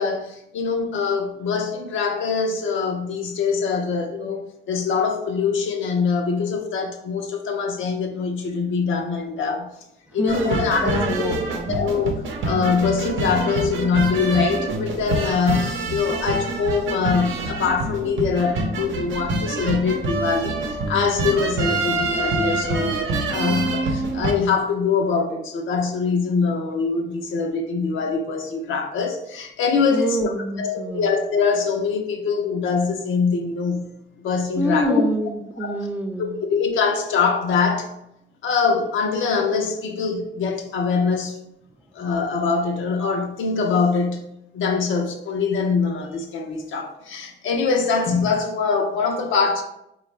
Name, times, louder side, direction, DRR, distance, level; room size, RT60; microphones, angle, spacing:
voice 1, 0.0-4.4 4.7-9.7 10.1-11.3 11.7-23.0 23.3-33.9 34.2-35.0 35.6-35.9 36.2-37.9 38.4-41.4 41.9-44.3 44.5-49.6, left 5 dB, 80° left, 0.7 m, -23 dB
voice 2, 10.2-11.7 29.9-31.1 34.6-36.4, right 1 dB, 10° right, 0.3 m, -26 dB
sound 1, 10.3-24.3, right 3 dB, 75° right, 0.6 m, -26 dB
4.2 x 2.4 x 3.1 m
cardioid pair, 90°, 20 cm